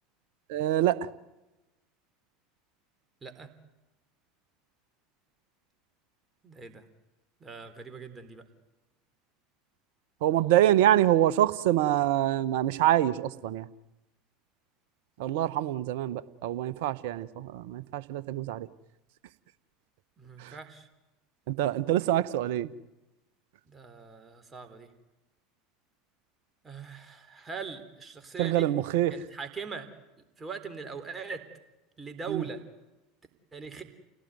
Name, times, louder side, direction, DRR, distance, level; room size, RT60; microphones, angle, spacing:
voice 1, 0.5-1.0 10.2-13.7 15.2-18.7 20.4-20.5 21.5-22.7 28.4-29.1 32.3-32.5, right 13 dB, 65° right, 17 dB, 1.1 m, -25 dB
voice 2, 6.4-6.8 7.4-8.4 20.2-20.9 23.7-24.9 26.6-28.7 29.1-29.9 30.4-31.4 32.0-32.6 33.5-33.8, right 5 dB, 20° right, 6 dB, 4.1 m, -41 dB
29.5 x 18.0 x 9.4 m, 1.0 s
figure-of-eight pair, 75°, 0 cm